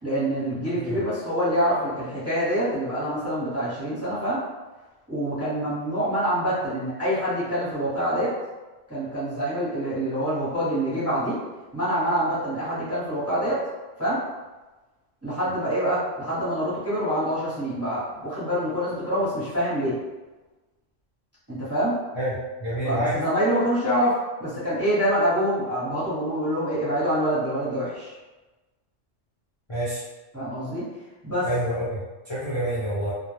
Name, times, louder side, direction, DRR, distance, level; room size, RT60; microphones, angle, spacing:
voice 1, 0.0-4.4 5.1-8.3 8.9-11.4 11.7-13.6 14.0-14.2 15.2-19.9 21.5-21.9 22.8-28.1 30.3-30.8 31.2-31.5, equal, 15° right, -10 dB, 0.9 m, -26 dB
voice 2, 22.6-23.2 29.7-30.0 31.4-32.0 32.3-33.1, right 1 dB, 30° left, -11 dB, 0.6 m, -27 dB
2.2 x 2.2 x 3.1 m, 1.2 s
omnidirectional pair, 1.3 m